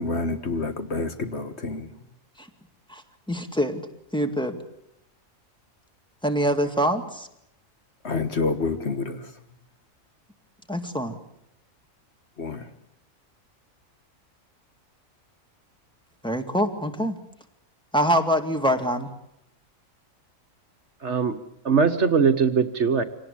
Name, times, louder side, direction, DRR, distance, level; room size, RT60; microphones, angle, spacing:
voice 1, 0.0-1.9 8.0-9.3 12.4-12.7, left 3 dB, 55° left, 8 dB, 1.7 m, -28 dB
voice 2, 3.3-3.8 4.1-4.6 6.2-7.3 10.7-11.2 16.2-17.2 17.9-19.1, equal, 5° left, 5 dB, 2.2 m, -24 dB
voice 3, 21.0-21.4 21.6-23.0, right 5 dB, 55° right, 8 dB, 1.5 m, -21 dB
25.5 x 18.5 x 8.6 m, 0.79 s
omnidirectional pair, 1.4 m